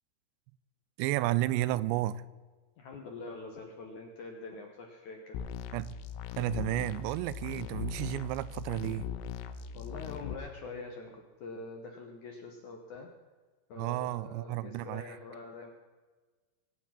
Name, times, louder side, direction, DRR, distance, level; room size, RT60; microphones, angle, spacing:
voice 1, 1.0-2.2 5.7-6.0 6.4-9.1 13.8-15.2, right 15 dB, 85° right, 17 dB, 2.8 m, -32 dB
voice 2, 2.8-5.4 9.7-13.1 13.7-15.7, left 3 dB, 65° left, 2 dB, 1.9 m, -45 dB
sound 1, 5.3-10.3, left 8 dB, 85° left, 3.3 m, -40 dB
22.0 x 9.2 x 5.9 m, 1.4 s
omnidirectional pair, 5.1 m